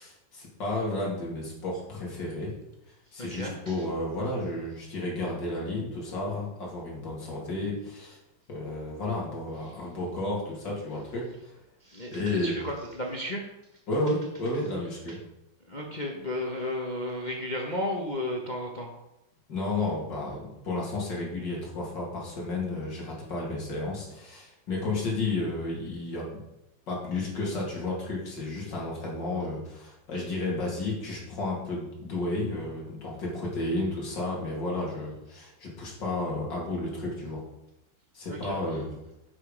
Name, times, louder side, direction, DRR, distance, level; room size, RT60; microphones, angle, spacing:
voice 1, 0.0-2.6 3.1-8.2 8.5-11.5 12.1-12.5 13.9-15.2 19.5-26.3 26.9-37.4 38.1-38.9, left 2 dB, 65° left, -3 dB, 3.2 m, -32 dB
voice 2, 3.2-3.7 9.6-9.7 11.8-13.5 15.1-15.2 15.7-18.9 38.3-38.8, left 1 dB, 30° left, -1 dB, 0.9 m, -34 dB
7.7 x 7.1 x 5.0 m, 0.91 s
omnidirectional pair, 2.1 m